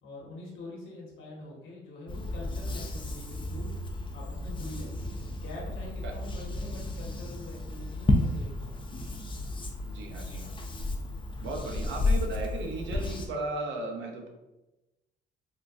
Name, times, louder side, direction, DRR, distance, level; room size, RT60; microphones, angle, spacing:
voice 1, 0.0-3.8 4.1-9.2, left 2 dB, 80° left, -4 dB, 1.2 m, -45 dB
sound 1, 2.1-13.3, left 2 dB, 25° left, 0.4 m, -32 dB
voice 2, 9.9-10.5 11.4-14.3, right 2 dB, 70° right, 1 dB, 0.7 m, -36 dB
3.7 x 2.3 x 2.5 m, 1.0 s
cardioid pair, 90°, 20 cm